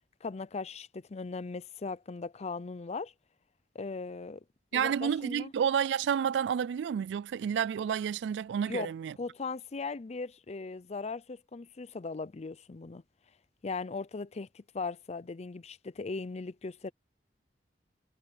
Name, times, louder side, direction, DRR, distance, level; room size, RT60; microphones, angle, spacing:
voice 1, 0.2-3.1 3.7-4.4 4.7-5.5 8.7-8.9 9.2-13.0 13.6-16.9, left 4 dB, 40° left, 0.5 m, -38 dB
voice 2, 4.7-9.1, right 8 dB, 85° right, 0.3 m, -30 dB
head